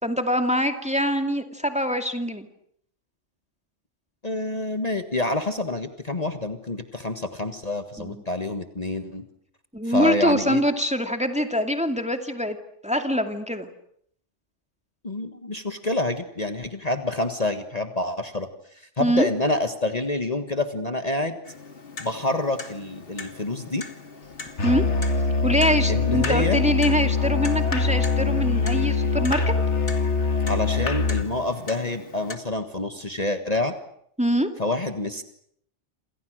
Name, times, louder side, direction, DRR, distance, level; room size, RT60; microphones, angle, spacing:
voice 1, 0.0-2.5 8.0-8.2 9.7-12.6 12.8-13.7 19.0-19.3 24.6-24.8 25.4-29.4 34.2-34.5, equal, 5° right, 6 dB, 2.2 m, -24 dB
voice 2, 4.2-9.2 9.8-10.6 15.0-18.5 19.0-21.4 22.0-23.9 25.9-26.6 30.5-33.7 34.6-35.2, left 2 dB, 30° left, 7 dB, 1.7 m, -27 dB
Clock, 21.4-32.4, left 3 dB, 50° left, 2.5 m, -42 dB
Musical instrument, 24.6-31.3, left 4 dB, 65° left, 2.3 m, -23 dB
28.0 x 28.0 x 6.4 m, 0.67 s
omnidirectional pair, 1.2 m